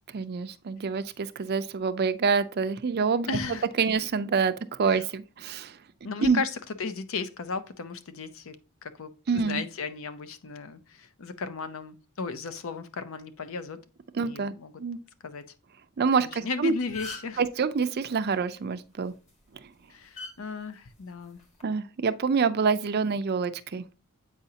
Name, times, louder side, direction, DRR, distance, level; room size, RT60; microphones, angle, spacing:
voice 1, 0.1-3.4 3.8-4.5 4.8-5.7 6.2-6.4 9.3-9.6 14.2-14.5 14.8-15.0 16.0-16.7 17.4-19.1 21.6-23.8, right 5 dB, 45° right, 0.4 m, -26 dB
voice 2, 3.3-3.7 4.9-5.0 6.0-8.6 8.8-13.8 14.2-14.8 15.2-15.4 16.2-17.4 19.9-21.4, left 4 dB, 60° left, 0.6 m, -35 dB
sound 1, 16.4-16.5 16.8-17.4 19.1-19.3 20.2-20.3 21.4-21.6, left 3 dB, 30° left, 1.4 m, -39 dB
8.0 x 4.9 x 2.8 m
head